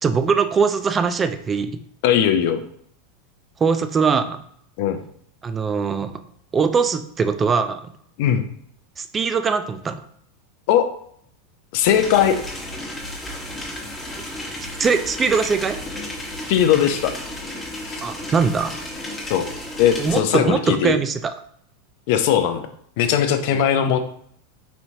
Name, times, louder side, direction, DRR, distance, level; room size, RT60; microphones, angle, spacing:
voice 1, 0.0-1.8 3.6-4.4 5.4-6.1 6.5-7.9 9.0-10.0 14.8-15.8 18.0-18.8 20.0-21.3, right 5 dB, 25° right, 9 dB, 0.3 m, -21 dB
voice 2, 2.0-2.6 4.8-5.0 8.2-8.4 10.7-10.9 11.7-12.4 16.5-17.2 17.9-18.0 19.3-19.5 19.8-21.0 22.1-22.7 23.0-24.0, left 9 dB, 65° left, 9 dB, 0.4 m, -19 dB
sound 1, 11.8-20.2, left 1 dB, 15° left, 1.2 m, -33 dB
4.2 x 2.8 x 2.7 m, 0.66 s
hypercardioid pair, 105°, 0 cm